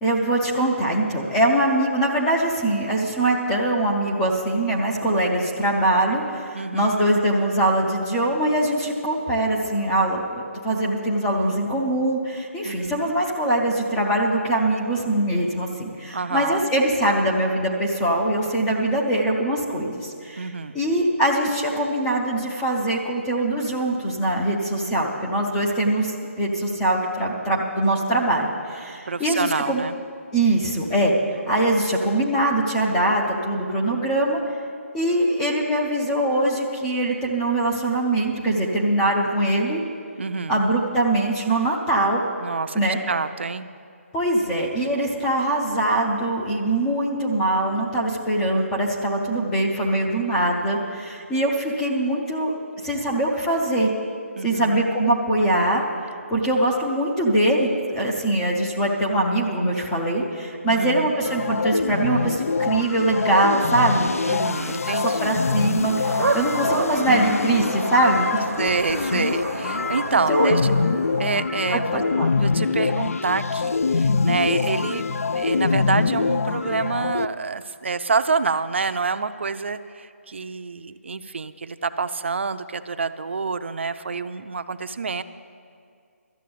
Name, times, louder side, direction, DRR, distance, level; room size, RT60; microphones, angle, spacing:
voice 1, 0.0-10.2 10.6-20.5 20.7-29.8 30.3-34.4 34.9-39.8 40.5-42.2 42.7-43.0 44.1-52.5 52.8-53.9 54.4-55.8 56.3-64.5 64.9-68.4 70.3-70.5 71.7-72.3, right 1 dB, 5° left, -2 dB, 0.4 m, -22 dB
voice 2, 6.5-7.1 12.6-13.1 16.1-16.7 20.4-20.8 29.1-29.9 40.2-40.6 42.4-43.7 54.4-54.9 60.6-61.1 64.3-65.3 68.6-70.7 71.2-72.0 72.4-85.2, right 4 dB, 55° right, 11 dB, 0.5 m, -27 dB
sound 1, 61.2-77.2, left 4 dB, 80° left, 0.4 m, -24 dB
sound 2, 66.0-71.8, right 4 dB, 75° right, 0.8 m, -30 dB
12.5 x 7.5 x 8.5 m, 2.3 s
hypercardioid pair, 175°, 8 cm